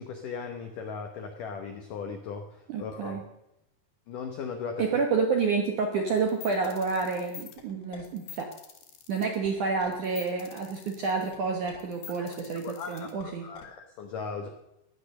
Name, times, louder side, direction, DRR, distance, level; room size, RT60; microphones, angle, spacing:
voice 1, 0.0-3.2 4.1-4.8 12.6-13.1 13.4-14.5, left 5 dB, 90° left, 5 dB, 1.8 m, -37 dB
voice 2, 2.7-3.2 4.8-8.5 9.1-13.5, right 4 dB, 70° right, 2 dB, 1.9 m, -29 dB
sound 1, 6.2-13.7, left 8 dB, 55° left, 3.2 m, -46 dB
16.0 x 10.5 x 6.7 m, 0.85 s
omnidirectional pair, 5.6 m